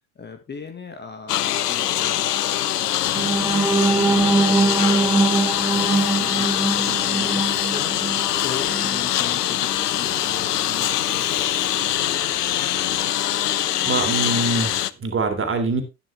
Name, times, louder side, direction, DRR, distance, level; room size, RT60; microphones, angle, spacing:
voice 1, 0.2-2.2 2.7-5.3 5.7-11.2, left 5 dB, 25° left, 8 dB, 1.6 m, -39 dB
Engine, 1.3-14.9, left 12 dB, 90° left, 0.6 m, -23 dB
sound 1, 3.0-13.0, left 5 dB, 40° left, 4.3 m, -41 dB
sound 2, 3.1-9.1 9.6-9.7 10.1-10.3, right 3 dB, 5° right, 0.6 m, -22 dB
voice 2, 13.8-15.8, right 3 dB, 25° right, 6 dB, 3.3 m, -24 dB
11.5 x 9.8 x 3.3 m, 0.25 s
hypercardioid pair, 75°, 46 cm